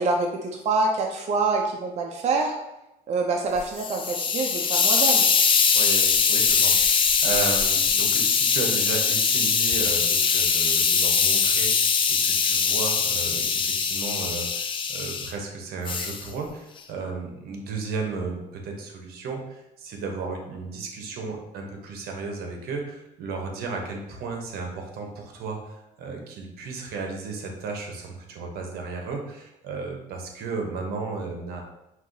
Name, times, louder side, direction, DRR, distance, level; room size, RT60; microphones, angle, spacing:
voice 1, 0.0-2.6 3.1-5.3, right 3 dB, 45° right, 1 dB, 0.5 m, -26 dB
Hiss, 3.6-15.3 15.9-16.2, left 6 dB, 30° left, 0.4 m, -22 dB
voice 2, 5.7-31.6, right 4 dB, 75° right, 2 dB, 0.9 m, -34 dB
5.6 x 2.8 x 2.7 m, 0.90 s
cardioid pair, 110°, 16 cm